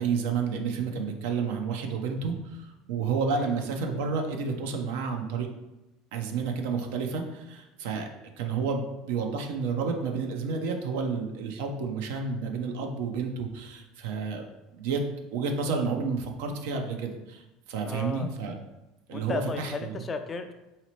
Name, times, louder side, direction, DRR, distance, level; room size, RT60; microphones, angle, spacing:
voice 1, 0.0-5.5 6.1-8.1 8.4-14.4 14.7-15.0 15.3-18.5 19.1-19.9, right 5 dB, 80° right, 3 dB, 0.5 m, -30 dB
voice 2, 17.9-18.3 19.1-20.5, left 4 dB, 30° left, 7 dB, 0.3 m, -34 dB
4.0 x 2.8 x 3.0 m, 1.0 s
supercardioid pair, 100°, 0 cm